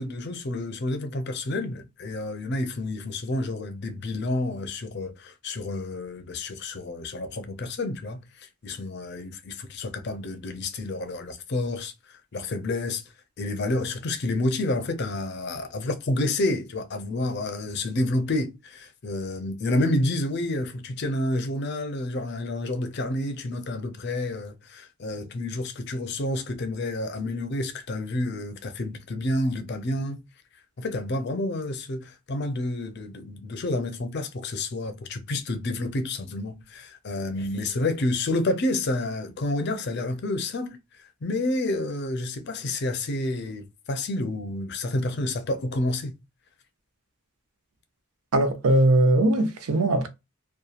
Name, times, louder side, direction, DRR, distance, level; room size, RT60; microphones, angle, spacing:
voice 1, 0.0-13.0 13.4-30.2 30.8-46.1, left 2 dB, 50° left, 0.5 m, -29 dB
voice 2, 48.3-50.1, right 1 dB, 90° right, 0.6 m, -20 dB
2.8 x 2.2 x 2.3 m
head